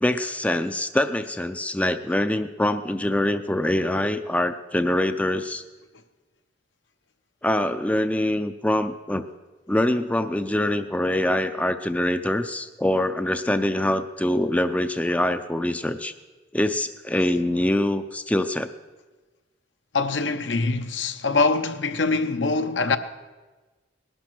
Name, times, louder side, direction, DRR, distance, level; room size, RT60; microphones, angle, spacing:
voice 1, 0.0-5.6 7.4-9.2 9.7-16.1 16.5-18.7, left 1 dB, 10° left, 0.4 m, -24 dB
voice 2, 19.9-23.0, left 3 dB, 70° left, 0.8 m, -23 dB
19.0 x 11.5 x 6.1 m
head